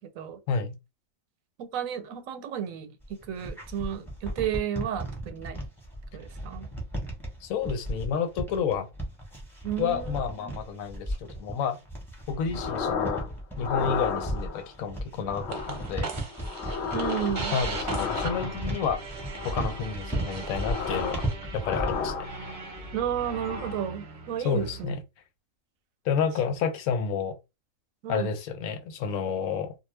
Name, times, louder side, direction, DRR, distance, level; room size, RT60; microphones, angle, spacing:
voice 1, 0.5-0.8 7.4-8.9 9.8-11.8 12.3-13.2 13.6-16.1 17.5-19.0 19.4-21.3 21.5-22.3 24.4-25.0 26.0-27.4 28.1-29.7, left 6 dB, 90° left, 1.0 m, -30 dB
voice 2, 1.6-2.9 3.3-5.6 6.1-6.7 9.6-10.5 16.9-17.5 22.9-24.9 28.0-28.3, right 9 dB, 85° right, 1.0 m, -32 dB
sound 1, 3.0-22.1, right 1 dB, ahead, 0.8 m, -35 dB
sound 2, 12.5-13.3 13.6-14.7 15.3-15.9 16.3-18.8 19.3-19.9 20.3-21.3 21.6-22.7 23.2-23.9, left 6 dB, 65° left, 0.8 m, -33 dB
sound 3, 15.5-24.8, right 3 dB, 45° right, 0.7 m, -39 dB
2.3 x 2.2 x 3.2 m
omnidirectional pair, 1.4 m